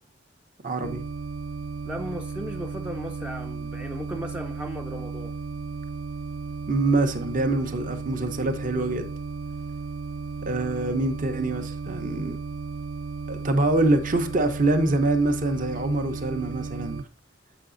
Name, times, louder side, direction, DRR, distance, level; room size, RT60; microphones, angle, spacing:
voice 1, 0.6-1.0 6.7-9.1 10.4-12.4 13.3-17.0, right 2 dB, 40° right, 0.6 m, -25 dB
sound 1, 0.8-17.0, right 4 dB, 90° right, 0.3 m, -35 dB
voice 2, 1.9-5.4, equal, 5° right, 0.3 m, -36 dB
6.8 x 5.9 x 2.5 m
head